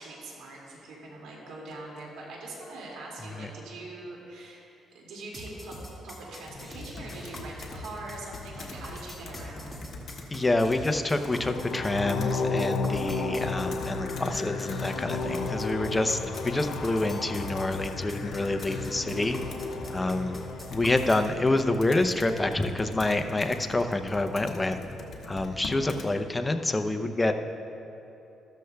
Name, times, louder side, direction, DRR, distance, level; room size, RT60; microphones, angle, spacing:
voice 1, 0.0-9.8, right 2 dB, 90° right, -3 dB, 2.2 m, -43 dB
sound 1, 5.3-21.3, equal, ahead, 2.0 m, -44 dB
Computer keyboard, 6.4-26.1, left 4 dB, 60° left, 1.3 m, -43 dB
voice 2, 10.3-19.4 19.9-20.4 20.7-24.8 25.3-27.3, left 2 dB, 15° left, 7 dB, 0.6 m, -27 dB
sound 2, 11.3-21.4, left 4 dB, 85° left, 0.6 m, -34 dB
13.5 x 13.0 x 2.3 m, 2.9 s
cardioid pair, 90°, 0 cm